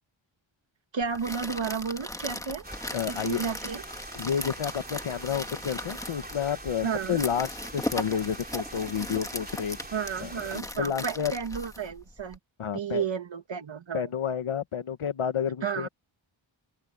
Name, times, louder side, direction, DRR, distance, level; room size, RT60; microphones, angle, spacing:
voice 1, 0.9-2.6 3.1-3.8 6.8-7.2 9.9-12.4 12.7-14.0 15.6-15.9, right 6 dB, 65° right, 1.8 m, -32 dB
sound 1, 1.0-12.4, left 1 dB, 5° left, 1.6 m, -38 dB
sound 2, 2.6-10.6, right 2 dB, 20° right, 3.4 m, -43 dB
voice 2, 2.9-3.4 4.1-9.8 10.2-11.3 12.6-13.0 13.9-15.9, left 8 dB, 85° left, 1.3 m, -30 dB
open air
wide cardioid pair, 120°, 49 cm